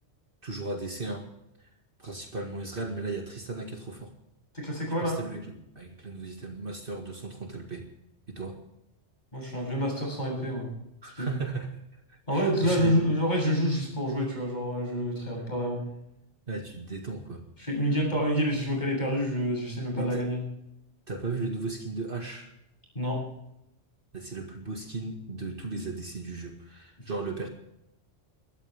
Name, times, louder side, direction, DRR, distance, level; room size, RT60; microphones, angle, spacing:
voice 1, 0.4-1.3 1.6-1.7 2.0-4.1 5.0-7.9 8.3-8.6 11.0-11.8 12.1-13.0 16.5-17.4 19.9-20.2 21.1-22.5 24.1-27.5, right 3 dB, 50° right, 2 dB, 2.1 m, -36 dB
voice 2, 4.5-5.2 9.3-10.7 11.2-11.3 12.3-15.8 17.6-20.4 22.9-23.2, equal, 40° left, 0 dB, 7.9 m, -28 dB
23.0 x 13.0 x 3.5 m, 0.80 s
omnidirectional pair, 1.2 m